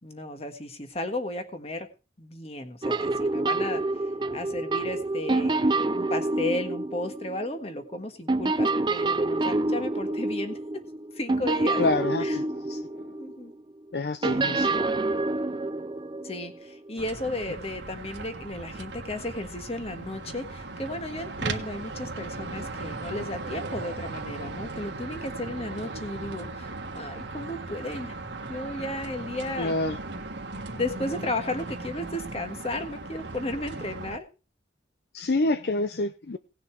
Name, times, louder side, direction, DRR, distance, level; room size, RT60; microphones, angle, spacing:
voice 1, 0.0-1.9 2.2-3.8 4.3-10.8 11.1-11.8 12.2-12.4 13.1-13.5 14.2-14.5 16.2-28.2 28.5-29.7 30.7-34.3, left 1 dB, 35° left, 7 dB, 1.5 m, -34 dB
sound 1, 2.8-7.9 8.3-13.5 14.2-16.9, right 2 dB, 25° right, 0.5 m, -27 dB
voice 2, 11.8-12.8 13.9-14.7 29.6-30.0 35.1-36.4, left 2 dB, 65° left, 10 dB, 0.6 m, -27 dB
sound 2, 17.0-34.2, right 3 dB, 90° right, 1.6 m, -37 dB
18.0 x 6.7 x 4.6 m, 0.33 s
head